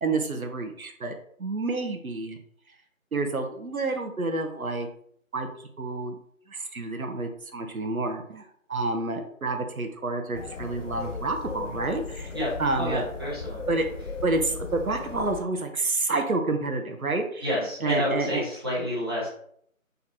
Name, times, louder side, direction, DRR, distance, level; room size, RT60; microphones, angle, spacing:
voice 1, 0.0-2.4 3.1-4.9 5.3-5.5 5.8-6.2 6.5-12.3 12.6-13.0 13.7-13.8 14.2-17.5 17.8-18.4, right 3 dB, 85° right, 5 dB, 0.9 m, -29 dB
sound 1, 10.3-15.4, left 4 dB, 60° left, 0.5 m, -37 dB
voice 2, 12.8-13.6 17.4-19.3, left 1 dB, 20° right, -9 dB, 1.1 m, -29 dB
4.3 x 3.9 x 2.8 m, 0.66 s
figure-of-eight pair, 165°, 42 cm